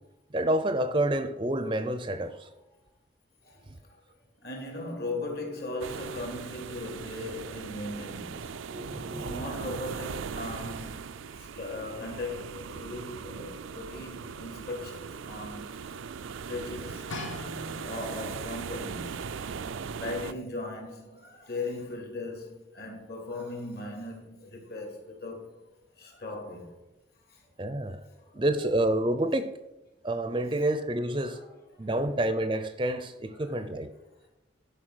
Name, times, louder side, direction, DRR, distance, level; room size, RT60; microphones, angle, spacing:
voice 1, 0.3-2.5 3.7-3.8 8.7-9.4 27.6-28.0 28.3-29.5 30.0-31.4 31.8-33.9, right 1 dB, 25° right, 0.5 m, -28 dB
voice 2, 4.4-8.6 9.3-15.7 16.3-17.3 17.8-19.5 19.9-25.6 26.0-26.7 27.3-27.4 28.4-28.5 31.2-31.5 31.7-31.8 33.3-33.6, left 2 dB, 50° left, 2.8 m, -38 dB
sound 1, 5.8-20.3, right 6 dB, 90° right, 0.5 m, -39 dB
sound 2, 17.1-18.4 19.1-19.2, left 2 dB, 85° left, 1.5 m, -40 dB
12.0 x 5.4 x 6.3 m
head